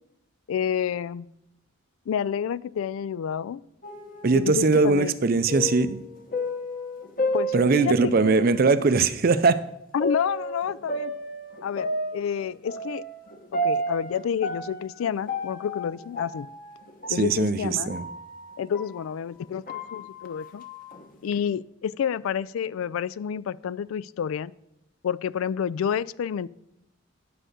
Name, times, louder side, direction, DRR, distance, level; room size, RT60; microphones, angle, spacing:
voice 1, 0.5-1.3 2.1-3.6 4.3-5.1 7.3-8.5 9.9-11.1 11.6-13.0 13.5-16.5 17.1-17.9 18.6-20.6 21.2-24.5 25.0-26.5, left 8 dB, 90° left, 20 dB, 0.3 m, -29 dB
sound 1, 3.8-8.4 8.9-9.0 10.0-19.0 19.4-21.3, equal, 45° left, 1.0 m, -32 dB
voice 2, 4.2-6.0 7.5-9.6 17.1-18.0, right 4 dB, 45° right, 14 dB, 0.5 m, -21 dB
10.0 x 5.0 x 6.6 m, 0.83 s
head